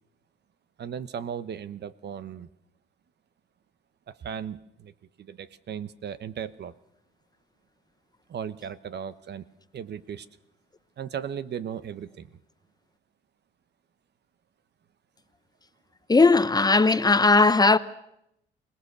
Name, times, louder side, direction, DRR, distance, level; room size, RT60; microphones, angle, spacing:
voice 1, 0.8-2.5 4.1-4.9 5.2-6.7 8.3-9.5 9.7-10.3 11.0-12.4, right 8 dB, 60° right, 1.0 m, -36 dB
voice 2, 16.1-17.8, left 3 dB, 20° left, 0.9 m, -18 dB
25.0 x 18.5 x 6.8 m
cardioid pair, 90°, 20 cm